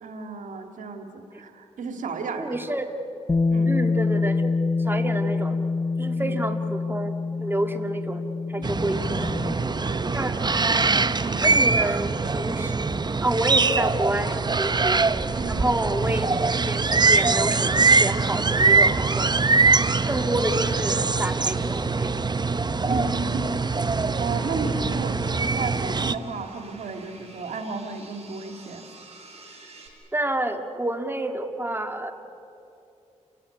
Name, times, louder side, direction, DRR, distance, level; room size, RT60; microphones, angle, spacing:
voice 1, 0.0-2.5 3.5-3.7 6.2-6.4 8.6-8.7 9.1-10.3 10.6-10.9 11.2-11.4 15.3-15.6 22.8-23.8 24.2-28.8, right 4 dB, 90° right, 5 dB, 2.1 m, -34 dB
voice 2, 2.4-2.9 3.7-4.5 4.8-5.6 6.0-8.2 8.5-9.3 10.1-10.4 11.4-12.8 13.2-15.1 15.5-16.3 16.5-19.3 20.1-22.3 30.1-32.1, right 1 dB, 15° right, 5 dB, 2.1 m, -29 dB
Bass guitar, 3.3-9.5, left 4 dB, 25° left, 0.5 m, -26 dB
sound 1, 8.6-26.2, right 4 dB, 35° right, 0.8 m, -23 dB
sound 2, 20.0-29.9, right 3 dB, 50° right, 5.7 m, -51 dB
29.5 x 16.5 x 9.8 m, 2.8 s
cardioid pair, 60°, 13 cm